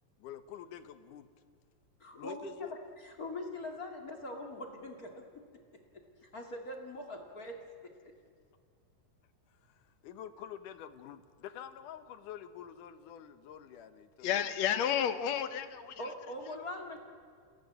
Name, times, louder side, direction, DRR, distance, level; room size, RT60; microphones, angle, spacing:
voice 1, 0.2-1.3 2.2-2.7 9.7-14.4, left 10 dB, 85° left, 11 dB, 2.7 m, -47 dB
voice 2, 2.0-5.4 6.2-8.1 16.0-17.0, left 1 dB, 30° left, 2 dB, 2.5 m, -43 dB
voice 3, 14.2-16.1 16.4-16.5, left 9 dB, 65° left, 11 dB, 2.1 m, -32 dB
28.5 x 17.0 x 9.3 m, 2.2 s
omnidirectional pair, 3.5 m